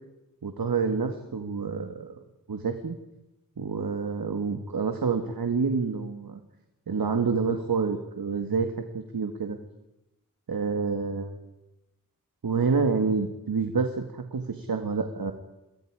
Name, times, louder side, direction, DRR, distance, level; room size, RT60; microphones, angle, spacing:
voice 1, 0.4-2.1 2.5-3.0 3.6-6.4 6.9-9.6 10.5-11.5 12.4-15.3, right 5 dB, 90° right, 6 dB, 2.0 m, -28 dB
28.0 x 22.0 x 4.9 m, 0.93 s
wide cardioid pair, 55°, 35 cm